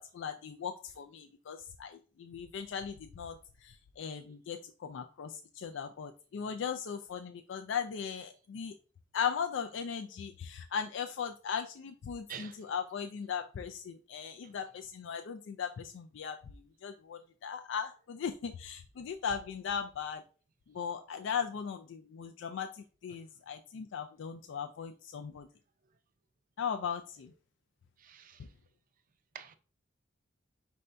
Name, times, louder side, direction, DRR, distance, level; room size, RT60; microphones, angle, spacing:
voice 1, 0.1-3.3 3.6-8.7 9.1-16.4 16.8-20.2 20.7-25.5 26.6-27.3, left 7 dB, 70° left, 0.4 m, -38 dB
voice 2, 12.3-12.6 28.0-28.4 29.3-29.6, right 8 dB, 45° right, 0.5 m, -46 dB
5.4 x 2.6 x 3.3 m
head